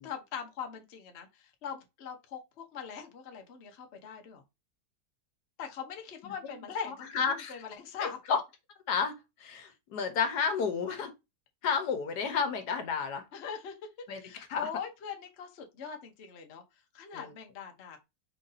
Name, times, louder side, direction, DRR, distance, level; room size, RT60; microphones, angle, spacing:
voice 1, 0.0-4.4 5.6-8.2 13.3-13.7 14.2-16.6 16.9-18.0, left 7 dB, 50° left, 1.0 m, -41 dB
voice 2, 7.1-7.6 8.0-8.4 8.9-9.1 9.4-11.1 11.6-13.2 14.1-14.2 14.5-14.7 17.1-17.3, left 6 dB, 75° left, 1.4 m, -31 dB
4.5 x 2.6 x 3.9 m
omnidirectional pair, 1.8 m